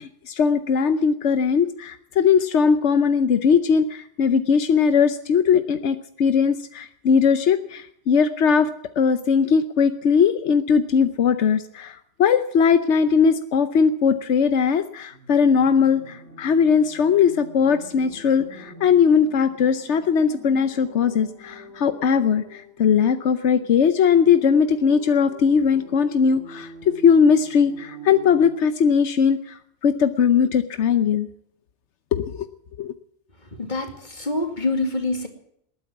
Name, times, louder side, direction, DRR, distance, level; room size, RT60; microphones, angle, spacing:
voice 1, 0.0-8.7 9.0-26.7 27.0-31.3 32.1-32.5 32.8-32.9, left 6 dB, 85° left, 10 dB, 1.1 m, -19 dB
sound 1, 15.1-28.5, right 1 dB, 70° right, 8.2 m, -44 dB
voice 2, 33.5-35.3, left 2 dB, 40° left, 5 dB, 2.6 m, -26 dB
20.0 x 9.4 x 7.2 m, 0.72 s
omnidirectional pair, 1.2 m